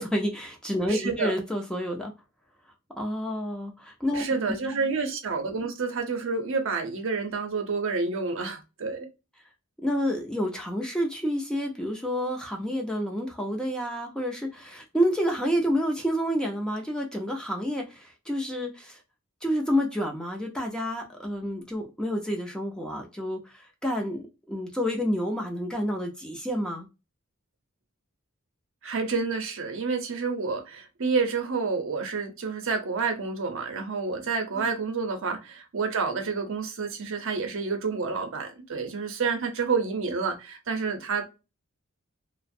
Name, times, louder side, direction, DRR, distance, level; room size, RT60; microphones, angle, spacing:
voice 1, 0.0-2.1 3.0-4.3 4.6-4.8 9.8-19.0 19.4-26.9 34.5-34.7, equal, 5° left, 0.5 m, -29 dB
voice 2, 0.9-1.3 4.2-9.1 28.8-41.4, right 4 dB, 65° right, 0.6 m, -29 dB
2.4 x 2.0 x 2.5 m
head